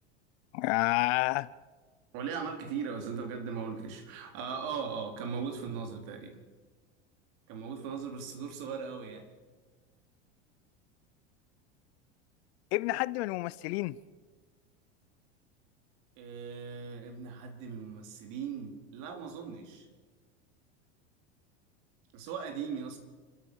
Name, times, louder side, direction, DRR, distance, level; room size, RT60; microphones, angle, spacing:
voice 1, 0.5-1.5 12.7-14.0, left 20 dB, 65° left, 0.8 m, -29 dB
voice 2, 2.1-6.5 7.5-9.3 16.2-19.9 22.1-23.0, right 6 dB, 60° right, 4.5 m, -38 dB
29.5 x 13.5 x 6.5 m
hypercardioid pair, 95°, 34 cm